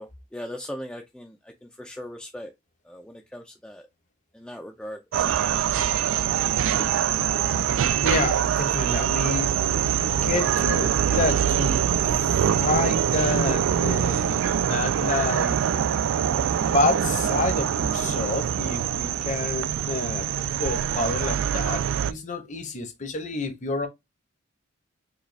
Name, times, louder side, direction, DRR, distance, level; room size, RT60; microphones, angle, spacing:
voice 1, 0.0-2.5 2.9-3.8 4.3-5.6 6.7-6.9, equal, 5° left, 0.4 m, -39 dB
sound 1, 5.1-22.1, right 9 dB, 80° right, 0.3 m, -24 dB
voice 2, 8.0-9.5 10.1-11.8 12.2-15.6 16.4-20.3 20.6-23.9, left 3 dB, 40° left, 0.8 m, -29 dB
4.9 x 2.3 x 3.2 m
head